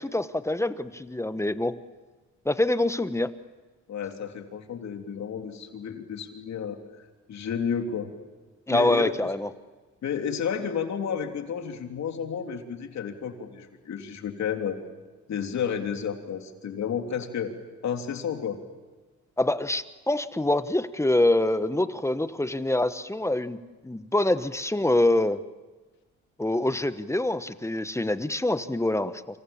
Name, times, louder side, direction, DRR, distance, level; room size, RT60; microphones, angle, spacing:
voice 1, 0.0-1.7 2.4-3.3 8.7-9.5 19.4-23.6 23.8-25.4 26.4-29.4, left 1 dB, 10° left, 12 dB, 1.1 m, -25 dB
voice 2, 3.9-6.8 7.3-8.1 8.7-9.1 10.0-14.8 15.3-17.5 17.8-18.6, left 7 dB, 65° left, 5 dB, 3.3 m, -31 dB
28.5 x 26.0 x 7.2 m, 1.3 s
cardioid pair, 90°, 30 cm